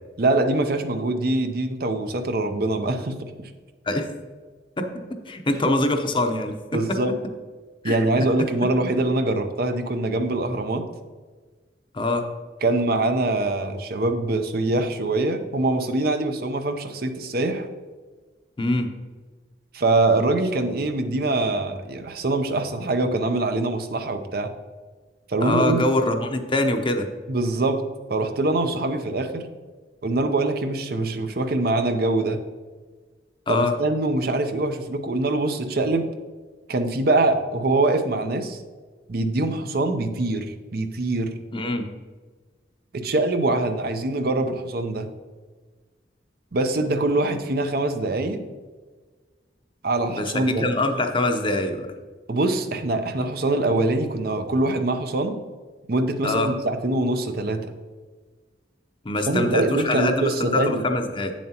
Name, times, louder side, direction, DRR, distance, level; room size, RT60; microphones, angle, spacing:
voice 1, 0.2-3.3 6.7-7.1 7.8-10.8 12.6-17.7 19.7-24.5 25.3-25.8 27.3-27.8 28.1-29.5 30.0-32.4 33.5-36.1 36.7-38.6 39.1-41.3 42.9-45.1 46.5-48.4 49.8-50.7 52.3-55.4 55.9-57.7 59.3-60.8, right 2 dB, 60° right, 7 dB, 0.7 m, -23 dB
voice 2, 5.3-7.0 7.8-8.0 11.9-12.3 18.6-18.9 25.4-27.1 33.5-33.7 41.5-42.0 50.2-51.9 56.2-56.5 59.0-61.3, left 2 dB, 30° left, 5 dB, 0.7 m, -24 dB
8.7 x 7.2 x 2.9 m, 1.4 s
head